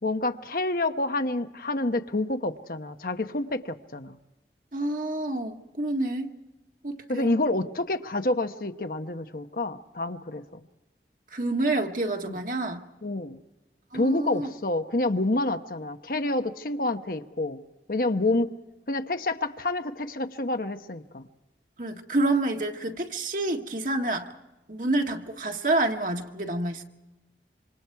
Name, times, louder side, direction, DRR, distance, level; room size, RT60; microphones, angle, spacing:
voice 1, 0.0-4.2 7.1-10.6 12.3-12.4 13.0-13.4 13.9-17.6 17.9-18.5 18.9-21.2, left 2 dB, 50° left, 1.0 m, -28 dB
voice 2, 4.7-6.3 6.8-7.4 11.3-12.8 13.9-14.5 21.8-24.3 24.7-26.8, right 2 dB, 45° right, 1.7 m, -28 dB
27.0 x 26.0 x 4.7 m
head